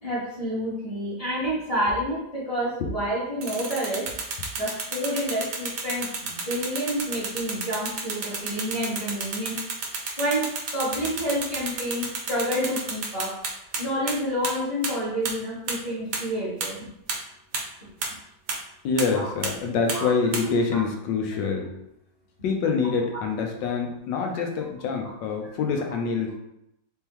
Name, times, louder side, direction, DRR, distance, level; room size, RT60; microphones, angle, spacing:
voice 1, 0.0-4.1 4.6-9.6 10.2-10.5 10.7-13.4 13.8-16.8 19.1-19.2 19.9-20.0 20.7-20.8 24.3-24.4, equal, 20° left, -7 dB, 1.3 m, -29 dB
sound 1, 3.4-13.8 14.1-14.2 14.4-14.5 14.8-14.9 15.3-15.4 15.7-15.8 16.1-16.2 16.6-16.7 17.1-17.2 17.5-17.6 18.0-18.1 18.5-18.6 19.0-19.1 19.4-19.5 19.9-20.0 20.3-20.4, right 4 dB, 60° right, 1.0 m, -30 dB
voice 2, 18.8-21.6 22.4-26.4, left 5 dB, 75° left, 3 dB, 1.4 m, -26 dB
4.5 x 3.6 x 3.0 m, 0.80 s
omnidirectional pair, 2.1 m